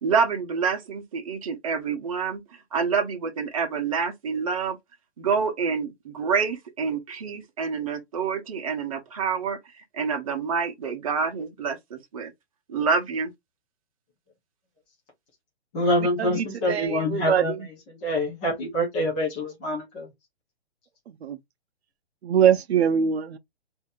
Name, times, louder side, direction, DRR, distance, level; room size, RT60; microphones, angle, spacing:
voice 1, 0.0-4.8 5.2-12.3 12.7-13.3, right 5 dB, 30° right, 0.8 m, -27 dB
voice 2, 15.7-20.1, left 1 dB, 10° left, 0.5 m, -26 dB
voice 3, 17.1-17.4 21.2-21.4 22.2-23.4, right 8 dB, 70° right, 0.6 m, -21 dB
3.2 x 2.7 x 3.6 m
hypercardioid pair, 165°, 33 cm